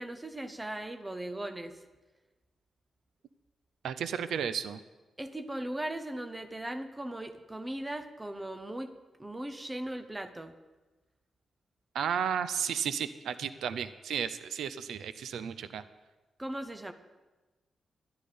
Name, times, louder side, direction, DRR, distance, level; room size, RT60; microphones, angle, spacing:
voice 1, 0.0-1.8 5.2-8.9 9.2-10.5 16.4-16.9, right 1 dB, 10° right, 9 dB, 0.7 m, -38 dB
voice 2, 3.8-4.8 11.9-15.8, right 8 dB, 90° right, 13 dB, 0.6 m, -33 dB
12.0 x 11.0 x 5.1 m, 1.2 s
wide cardioid pair, 180°, 0 cm